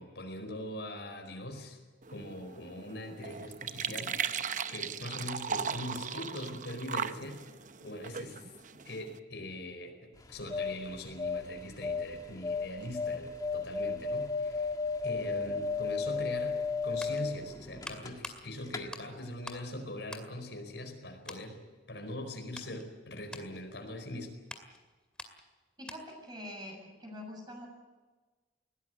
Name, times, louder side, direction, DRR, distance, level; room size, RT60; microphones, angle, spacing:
voice 1, 0.0-1.8 2.1-7.4 7.8-8.4 8.7-14.7 15.0-21.6 21.9-24.3, left 1 dB, 80° left, 5 dB, 4.7 m, -42 dB
sound 1, 2.0-9.2, right 7 dB, 45° right, 0.8 m, -38 dB
sound 2, 10.2-18.4 18.7-18.8, left 4 dB, 20° left, 1.8 m, -34 dB
sound 3, 17.0-19.7 20.0-21.0 21.2-21.5 22.0-26.3 26.6-26.7, left 1 dB, 5° left, 2.2 m, -48 dB
voice 2, 25.8-27.7, left 1 dB, 25° right, 2 dB, 7.1 m, -45 dB
21.0 x 17.5 x 9.4 m, 1.3 s
head